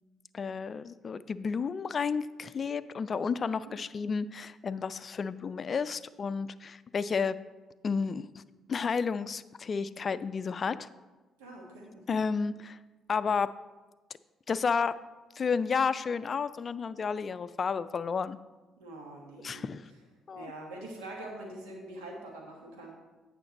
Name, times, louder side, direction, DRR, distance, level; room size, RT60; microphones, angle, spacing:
voice 1, 0.3-7.4 7.8-8.3 8.7-10.9 12.1-12.8 13.1-13.5 14.5-15.0 15.4-18.4 19.4-19.8 20.3-20.5, left 5 dB, 45° left, 15 dB, 0.3 m, -31 dB
voice 2, 11.4-12.2 18.8-19.7 20.3-22.9, right 2 dB, 85° right, 0 dB, 1.4 m, -44 dB
9.1 x 5.9 x 4.0 m, 1.2 s
hypercardioid pair, 50°, 0 cm